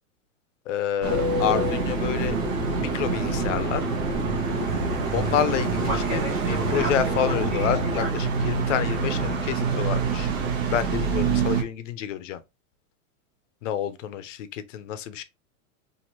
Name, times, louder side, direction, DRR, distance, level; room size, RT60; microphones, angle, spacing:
voice 1, 0.7-2.4 2.8-3.8 5.1-10.3 10.7-12.4 13.6-15.2, left 9 dB, 55° left, 0.6 m, -28 dB
Fixed-wing aircraft airplane, 1.0-8.1, equal, 20° right, 0.7 m, -29 dB
sound 1, 1.0-11.6, right 5 dB, 60° right, 1.0 m, -27 dB
2.8 x 2.6 x 2.9 m
supercardioid pair, 160°, 44 cm